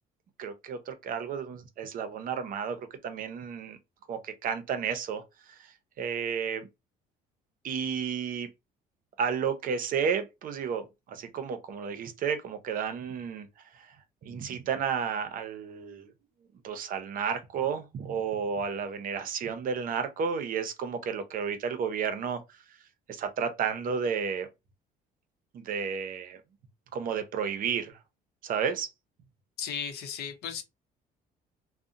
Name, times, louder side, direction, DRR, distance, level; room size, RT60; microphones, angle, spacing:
voice 1, 0.4-2.8 3.0-3.8 4.1-5.2 5.5-5.6 6.0-6.7 7.6-8.5 9.2-13.5 13.7-13.9 14.2-16.1 16.6-22.4 23.1-24.5 25.5-26.4 26.9-28.0 28.4-28.9, right 6 dB, 55° right, 0.6 m, -32 dB
voice 2, 29.6-30.6, left 8 dB, 70° left, 0.6 m, -35 dB
2.7 x 2.1 x 2.5 m
cardioid pair, 110°, 17 cm